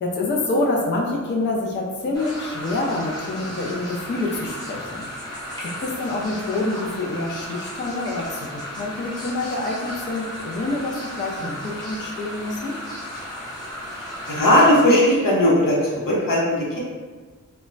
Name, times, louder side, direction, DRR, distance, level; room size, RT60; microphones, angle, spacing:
voice 1, 0.0-5.1 5.6-12.8, left 2 dB, 35° left, -1 dB, 0.4 m, -27 dB
sound 1, 2.1-14.9, left 1 dB, 15° left, 0.7 m, -34 dB
voice 2, 14.0-16.8, left 1 dB, 90° left, -5 dB, 0.8 m, -18 dB
2.1 x 2.1 x 3.8 m, 1.4 s
wide cardioid pair, 105°, 32 cm